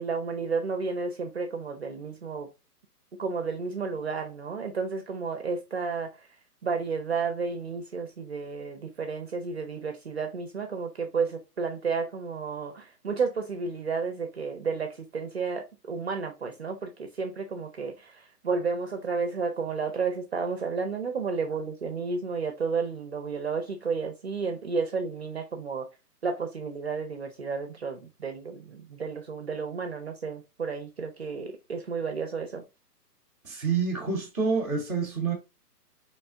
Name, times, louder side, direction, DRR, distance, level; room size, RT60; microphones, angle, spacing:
voice 1, 0.0-2.5 3.2-6.3 6.6-25.9 26.2-32.6, right 5 dB, 45° right, 0.4 m, -32 dB
voice 2, 33.4-35.3, right 5 dB, 10° left, 0.5 m, -27 dB
3.4 x 3.0 x 2.7 m
hypercardioid pair, 155°, 49 cm